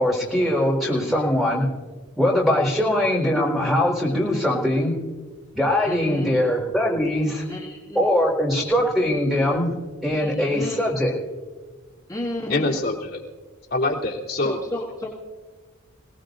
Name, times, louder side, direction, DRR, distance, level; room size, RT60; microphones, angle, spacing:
voice 1, 0.0-1.7 2.2-4.9 5.5-7.4 7.9-9.7 10.0-11.1, left 1 dB, ahead, -3 dB, 4.4 m, -21 dB
voice 2, 5.9-6.3 7.5-8.0 10.2-10.8 12.1-12.7 14.4-15.1, left 1 dB, 20° left, -7 dB, 2.2 m, -32 dB
voice 3, 12.5-13.2 13.7-14.6, left 2 dB, 50° left, -3 dB, 3.3 m, -24 dB
28.0 x 18.0 x 2.7 m, 1.4 s
head